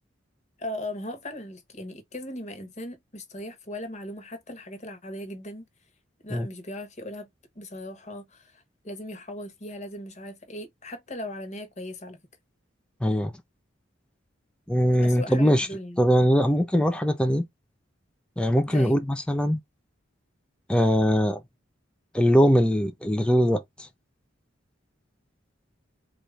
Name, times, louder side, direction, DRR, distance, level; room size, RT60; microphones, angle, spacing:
voice 1, 0.6-5.7 6.2-7.3 7.5-12.2 15.0-16.0 18.7-19.0, left 1 dB, 35° left, 1.1 m, -38 dB
voice 2, 13.0-13.3 14.7-15.7 16.0-17.5 18.4-19.6 20.7-21.4 22.1-23.6, equal, 5° left, 0.5 m, -21 dB
4.1 x 2.5 x 3.2 m
head